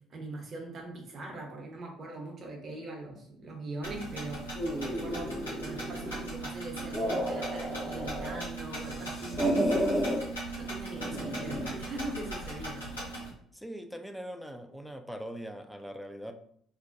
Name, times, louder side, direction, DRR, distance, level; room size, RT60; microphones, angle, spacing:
voice 1, 0.1-13.1, right 2 dB, 45° right, 1 dB, 0.7 m, -42 dB
sound 1, 3.8-13.3, right 2 dB, 90° left, 0.8 m, -39 dB
sound 2, 4.6-6.3 6.7-8.4 8.7-10.2 11.0-11.7, equal, 30° left, 0.7 m, -32 dB
voice 2, 13.5-16.3, equal, ahead, 6 dB, 0.4 m, -41 dB
2.5 x 2.1 x 2.5 m, 0.65 s
figure-of-eight pair, 50°, 0 cm